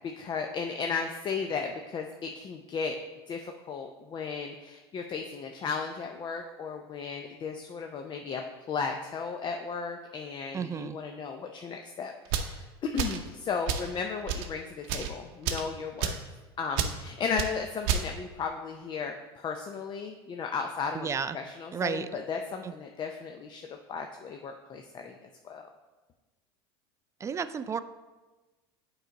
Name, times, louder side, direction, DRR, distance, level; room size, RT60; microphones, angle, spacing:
voice 1, 0.0-3.0 3.3-16.2 16.6-21.1 21.3-25.7, left 5 dB, 35° left, 4 dB, 0.6 m, -35 dB
voice 2, 10.5-11.0 20.9-21.4 21.7-22.1 22.6-22.7 27.2-27.8, right 6 dB, 20° right, 12 dB, 0.3 m, -32 dB
sound 1, 12.3-12.5 13.0-13.3 13.7-13.9 14.3-14.5 14.8-15.1 15.5-15.7 16.0-16.2 16.8-17.0 17.4-17.5 17.9-18.1, right 7 dB, 70° right, 0.7 m, -30 dB
7.8 x 4.6 x 3.9 m, 1.2 s
hypercardioid pair, 90°, 13 cm